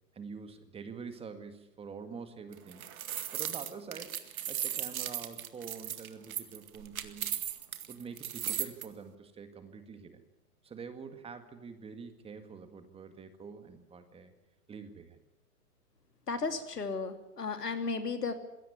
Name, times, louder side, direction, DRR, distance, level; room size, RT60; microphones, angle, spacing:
voice 1, 0.1-2.9 3.3-4.1 4.5-7.4 7.9-10.2 10.6-14.3 14.7-15.2, right 5 dB, 10° right, 9 dB, 1.9 m, -46 dB
sound 1, 2.5-8.8, right 10 dB, 60° right, 2.1 m, -37 dB
voice 2, 16.3-18.3, left 4 dB, 85° left, 8 dB, 3.0 m, -34 dB
21.0 x 17.0 x 9.7 m, 0.90 s
hypercardioid pair, 125°, 46 cm